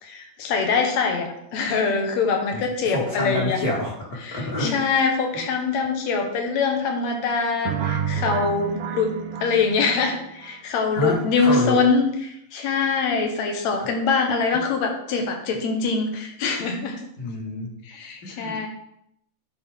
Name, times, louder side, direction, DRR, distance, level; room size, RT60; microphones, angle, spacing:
voice 1, 0.0-3.6 4.2-9.2 9.4-17.0 17.9-18.7, left 5 dB, 70° left, 3 dB, 2.3 m, -24 dB
voice 2, 2.9-4.0 4.3-4.8 5.3-5.4 10.9-11.8 13.7-13.9 14.5-14.6 17.2-17.7 18.2-18.7, left 1 dB, 35° left, -4 dB, 1.8 m, -27 dB
sound 1, 7.7-10.5, right 7 dB, 80° right, 1.3 m, -29 dB
11.5 x 4.3 x 3.6 m, 0.77 s
omnidirectional pair, 3.4 m